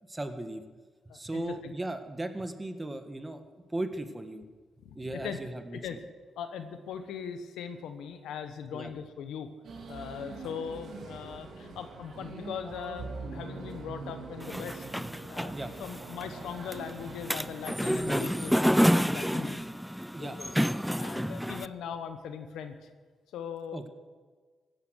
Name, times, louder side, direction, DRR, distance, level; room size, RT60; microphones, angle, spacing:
voice 1, 0.1-0.6 1.1-4.4 4.9-6.0 8.7-8.9 15.5-15.7 20.1-20.4 23.7-23.9, right 1 dB, 20° right, 8 dB, 1.5 m, -37 dB
voice 2, 1.1-1.7 4.8-5.4 5.7-6.0 6.4-9.5 9.9-14.8 15.3-19.7 20.2-20.5 21.0-22.9 23.3-23.8, left 7 dB, 85° left, 8 dB, 1.2 m, -40 dB
sound 1, 9.6-19.0, right 3 dB, 70° right, 3.0 m, -44 dB
sound 2, 14.4-21.7, equal, ahead, 0.4 m, -29 dB
16.0 x 12.0 x 6.4 m, 1.5 s
cardioid pair, 70°, 0 cm